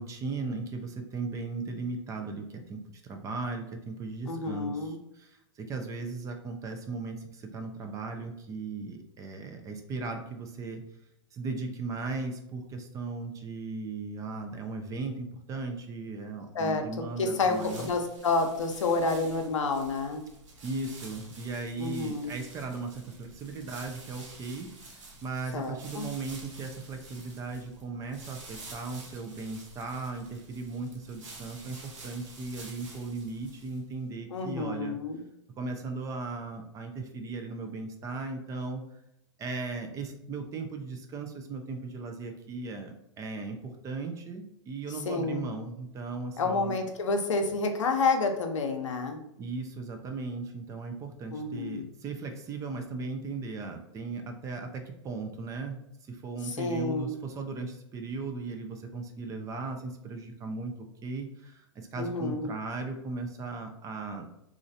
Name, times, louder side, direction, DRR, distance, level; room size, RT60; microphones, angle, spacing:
voice 1, 0.0-4.8 5.7-7.2 7.5-10.8 11.4-17.9 20.6-24.7 25.2-35.0 35.6-38.8 39.4-43.6 43.8-46.7 49.4-55.8 56.1-60.7 61.0-61.3 61.9-64.3, right 3 dB, 20° right, 5 dB, 0.4 m, -37 dB
voice 2, 4.3-5.0 16.5-20.2 21.8-22.3 25.5-26.1 34.3-35.2 44.9-45.5 46.4-49.2 51.3-51.9 56.4-57.2 62.0-62.5, left 3 dB, 85° left, 5 dB, 0.6 m, -29 dB
sound 1, 17.4-33.9, right 2 dB, 85° right, 0.9 m, -49 dB
3.1 x 2.4 x 2.6 m, 0.81 s
hypercardioid pair, 120°, 16 cm